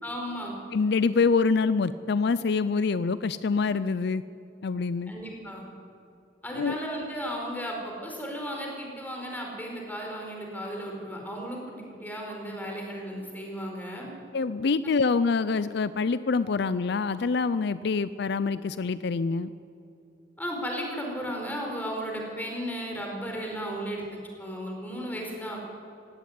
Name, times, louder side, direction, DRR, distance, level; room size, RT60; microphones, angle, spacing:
voice 1, 0.0-0.5 5.1-5.7 6.4-14.1 14.8-14.9 20.4-25.6, equal, 10° left, 0 dB, 4.6 m, -35 dB
voice 2, 0.7-4.2 4.6-5.1 6.5-6.8 14.3-19.5, left 4 dB, 65° left, 15 dB, 0.5 m, -25 dB
17.0 x 16.5 x 9.6 m, 2.8 s
head